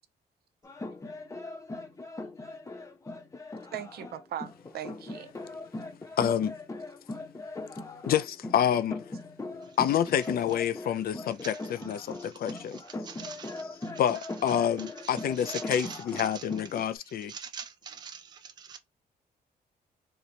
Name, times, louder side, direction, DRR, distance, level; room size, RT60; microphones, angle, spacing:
sound 1, 0.6-16.9, left 2 dB, 20° left, 0.7 m, -40 dB
voice 1, 3.7-5.3, right 10 dB, 70° right, 0.5 m, -39 dB
voice 2, 6.2-6.5 8.1-9.0 9.8-12.8 14.0-17.3, left 9 dB, 65° left, 0.4 m, -28 dB
voice 3, 11.4-11.7 12.1-13.9 14.5-14.6 15.0-16.8 17.3-18.8, right 7 dB, 25° right, 0.4 m, -45 dB
2.9 x 2.2 x 3.9 m
cardioid pair, 120°, 17 cm